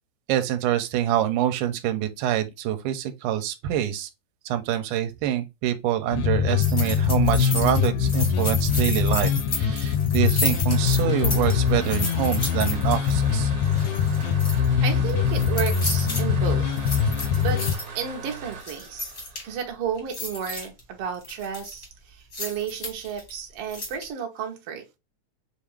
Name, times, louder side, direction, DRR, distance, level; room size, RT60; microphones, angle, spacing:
voice 1, 0.3-4.1 4.5-9.3 9.6-13.5, right 12 dB, 85° right, 2.1 m, -26 dB
sound 1, 6.1-17.7, left 7 dB, 80° left, 1.6 m, -23 dB
sound 2, 6.6-13.2 13.6-14.7 15.1-16.2 16.7-17.8 18.4-19.6 20.0-20.8 21.2-21.8 22.3-23.3 23.7-24.0, left 2 dB, 55° left, 0.7 m, -32 dB
sound 3, 10.4-20.2, right 4 dB, 45° right, 1.2 m, -40 dB
voice 2, 14.8-17.7 17.9-19.1 19.4-24.8, right 7 dB, 70° right, 1.5 m, -32 dB
5.3 x 2.4 x 3.1 m
omnidirectional pair, 3.6 m